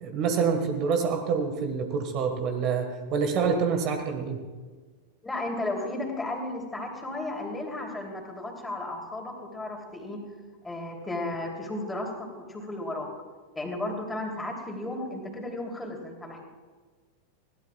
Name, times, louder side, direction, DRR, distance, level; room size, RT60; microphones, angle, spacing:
voice 1, 0.0-4.4, right 5 dB, 40° right, 5 dB, 1.6 m, -27 dB
voice 2, 5.2-10.2 10.6-13.1 13.5-16.4, left 2 dB, 10° left, 1 dB, 3.1 m, -34 dB
20.0 x 16.5 x 2.4 m, 1.4 s
figure-of-eight pair, 90°, 0 cm